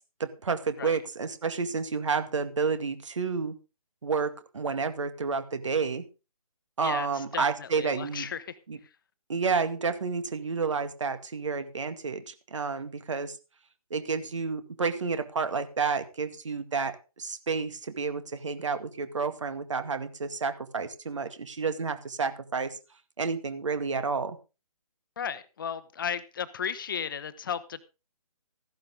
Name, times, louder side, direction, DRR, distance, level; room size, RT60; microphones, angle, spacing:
voice 1, 0.2-3.5 4.0-6.1 6.8-8.3 8.7-8.8 9.3-13.4 13.9-22.8 23.2-24.4, right 5 dB, 55° right, 11 dB, 2.1 m, -30 dB
voice 2, 6.8-8.6 25.2-27.8, left 7 dB, 35° left, 15 dB, 1.0 m, -35 dB
15.0 x 11.5 x 3.7 m, 0.31 s
figure-of-eight pair, 145°, 19 cm